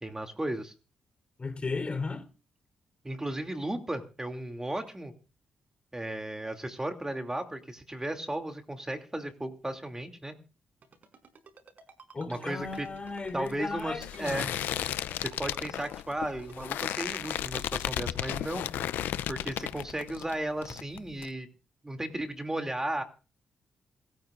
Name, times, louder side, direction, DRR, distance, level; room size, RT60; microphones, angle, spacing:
voice 1, 0.0-0.7 3.0-5.1 5.9-10.3 12.3-12.9 13.3-14.5 15.2-18.7 19.3-21.5 21.8-23.0, right 1 dB, 15° right, 2.8 m, -35 dB
voice 2, 1.4-2.2 12.1-14.6, left 3 dB, 35° left, 3.7 m, -35 dB
Ringtone, 10.8-17.6, right 5 dB, 60° right, 5.3 m, -53 dB
sound 1, 12.6-20.3 20.6-21.3, left 12 dB, 85° left, 0.6 m, -34 dB
27.0 x 14.0 x 2.6 m
supercardioid pair, 55°, 3 cm